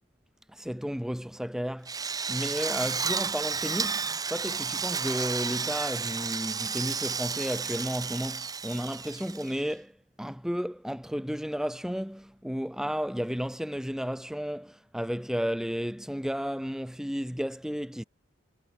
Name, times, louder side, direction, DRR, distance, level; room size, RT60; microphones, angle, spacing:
voice 1, 0.5-4.0 4.3-18.0, equal, 5° right, 1.2 m, -33 dB
Drill, 1.9-9.7, right 5 dB, 20° right, 0.8 m, -32 dB
head